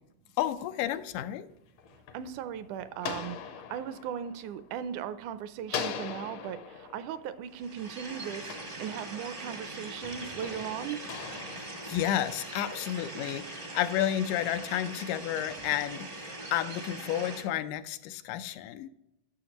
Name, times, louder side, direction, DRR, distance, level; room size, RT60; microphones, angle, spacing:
voice 1, 0.4-1.5 11.6-18.9, left 12 dB, 85° left, 11 dB, 2.1 m, -31 dB
sound 1, 1.5-5.2 5.7-9.4 10.0-12.7, left 7 dB, 70° left, 1.6 m, -42 dB
voice 2, 2.1-11.0, right 9 dB, 80° right, 13 dB, 1.9 m, -38 dB
sound 2, 7.5-17.4, right 2 dB, 55° right, 0.6 m, -41 dB
11.5 x 6.7 x 2.9 m, 0.84 s
omnidirectional pair, 3.6 m